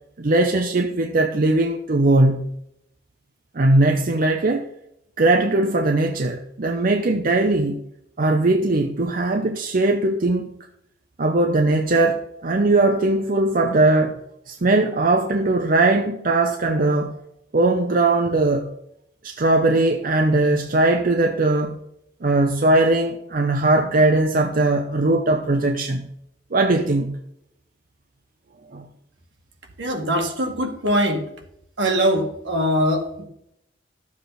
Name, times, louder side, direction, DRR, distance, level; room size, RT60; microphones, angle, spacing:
voice 1, 0.2-2.6 3.5-4.7 5.2-7.8 8.2-10.5 11.2-14.2 14.5-17.2 17.5-18.7 19.2-21.8 22.2-26.1 26.5-27.2 28.7-28.8, right 2 dB, 50° right, 5 dB, 0.7 m, -19 dB
voice 2, 29.8-31.2 31.8-33.2, equal, 75° right, 3 dB, 1.9 m, -22 dB
12.5 x 7.3 x 4.1 m, 0.77 s
head